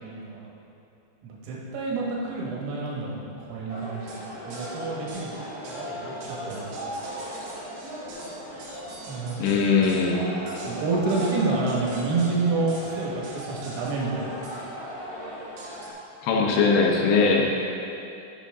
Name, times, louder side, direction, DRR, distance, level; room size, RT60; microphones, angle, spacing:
voice 1, 0.0-0.5 1.2-5.4 5.7-6.7 9.0-9.5 10.6-14.7, right 3 dB, 90° right, -4 dB, 3.9 m, -29 dB
sound 1, 3.7-15.9, equal, 70° right, 2.3 m, -37 dB
voice 2, 9.4-10.3 16.2-17.5, left 4 dB, 80° left, 0 dB, 3.1 m, -20 dB
8.4 x 6.9 x 3.6 m, 2.7 s
omnidirectional pair, 5.8 m